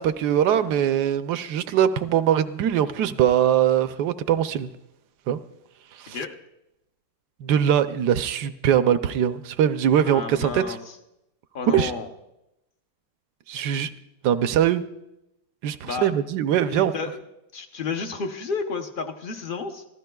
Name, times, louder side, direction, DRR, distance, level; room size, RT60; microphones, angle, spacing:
voice 1, 0.0-4.7 5.3-5.4 6.0-6.2 7.4-10.8 11.7-11.9 13.5-13.9 14.2-14.8 15.6-16.9, right 10 dB, 70° right, 11 dB, 1.1 m, -22 dB
voice 2, 10.0-11.0 11.5-12.1 15.8-16.1 16.7-17.2 17.5-19.8, left 4 dB, 60° left, 5 dB, 0.5 m, -31 dB
25.0 x 15.0 x 2.3 m, 0.89 s
omnidirectional pair, 2.1 m